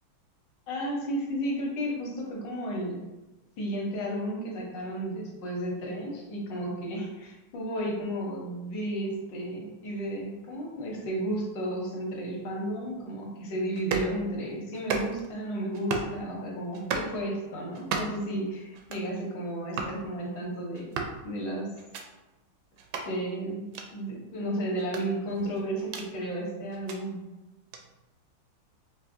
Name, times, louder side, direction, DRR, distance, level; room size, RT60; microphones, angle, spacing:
voice 1, 0.7-3.0 3.6-21.0 21.2-21.7 23.0-27.2, right 1 dB, 65° left, -2 dB, 1.5 m, -33 dB
sound 1, 13.7-14.1 14.7-15.3 15.7-16.2 16.7-17.1 17.7-18.3 18.7-19.1 19.7-20.0 20.7-21.2 21.8-22.0 22.8-23.1 23.7-23.9 24.8-26.1 26.7-27.0 27.7-27.8, right 5 dB, 75° right, 0.9 m, -34 dB
5.3 x 2.5 x 2.6 m, 1.1 s
omnidirectional pair, 2.3 m